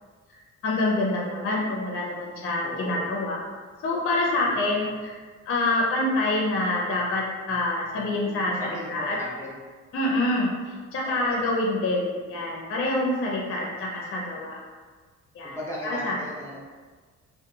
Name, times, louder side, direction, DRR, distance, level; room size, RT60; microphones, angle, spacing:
voice 1, 0.3-3.4 3.8-5.2 5.5-9.2 9.9-14.6 15.3-15.6 15.8-16.2, left 2 dB, 45° left, -2 dB, 0.5 m, -26 dB
voice 2, 2.6-3.1 4.4-4.9 8.2-9.5 11.0-11.5 13.4-13.7 15.4-16.6, left 1 dB, 10° left, -6 dB, 0.8 m, -38 dB
2.5 x 2.2 x 2.7 m, 1.5 s
cardioid pair, 90°, 30 cm